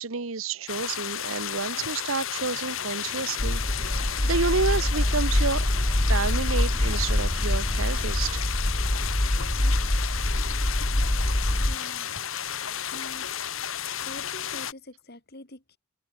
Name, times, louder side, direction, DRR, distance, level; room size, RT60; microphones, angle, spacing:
voice 1, 0.0-5.6 6.1-8.4, right 4 dB, 70° right, 1.2 m, -30 dB
sound 1, 0.7-14.7, left 9 dB, 70° left, 1.7 m, -33 dB
sound 2, 2.4-8.5, right 2 dB, 20° right, 2.7 m, -48 dB
sound 3, 3.4-11.8, left 1 dB, 20° left, 1.2 m, -25 dB
voice 2, 11.4-12.4 12.9-13.3 14.0-15.8, left 2 dB, 50° left, 3.0 m, -45 dB
head